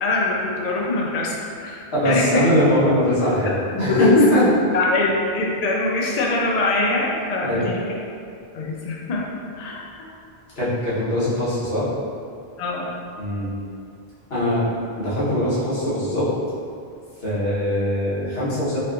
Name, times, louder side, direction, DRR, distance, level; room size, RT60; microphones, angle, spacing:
voice 1, 0.0-2.4 3.4-4.2 4.7-7.8 8.5-9.3 9.5-10.1 12.6-12.9, left 3 dB, 50° left, -2 dB, 0.5 m, -23 dB
voice 2, 1.9-3.5 3.8-4.4 7.4-7.7 10.5-11.9 13.2-13.5 14.3-16.3 17.2-18.8, equal, 75° left, -12 dB, 1.4 m, -21 dB
4.2 x 2.8 x 2.5 m, 2.4 s
omnidirectional pair, 1.0 m